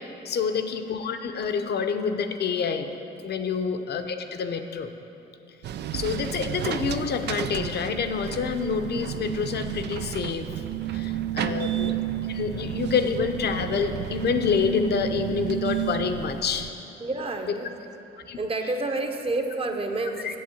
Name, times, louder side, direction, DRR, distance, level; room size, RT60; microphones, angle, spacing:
voice 1, 0.2-2.9 3.2-4.9 5.9-10.5 10.9-12.0 12.3-16.7 18.3-18.4 20.2-20.3, left 6 dB, 55° left, 7 dB, 0.8 m, -27 dB
sound 1, 5.6-16.7, right 11 dB, 60° right, 0.4 m, -32 dB
voice 2, 11.4-11.8 17.0-17.7 18.4-20.4, right 2 dB, 30° right, 5 dB, 1.0 m, -30 dB
7.8 x 7.5 x 8.3 m, 2.9 s
cardioid pair, 90°, 20 cm